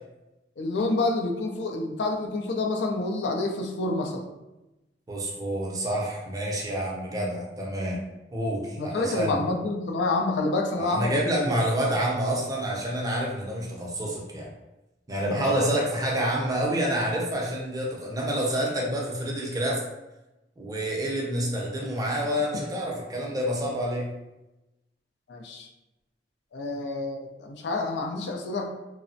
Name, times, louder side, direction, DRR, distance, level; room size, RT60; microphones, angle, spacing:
voice 1, 0.6-4.3 8.7-11.5 15.3-15.7 25.3-25.7 26.5-28.7, left 2 dB, 80° left, 3 dB, 0.4 m, -28 dB
voice 2, 5.1-8.0 8.3-9.4 10.8-14.5 15.1-19.8 20.6-24.1, equal, 20° right, -2 dB, 0.5 m, -28 dB
3.1 x 2.0 x 2.6 m, 0.99 s
head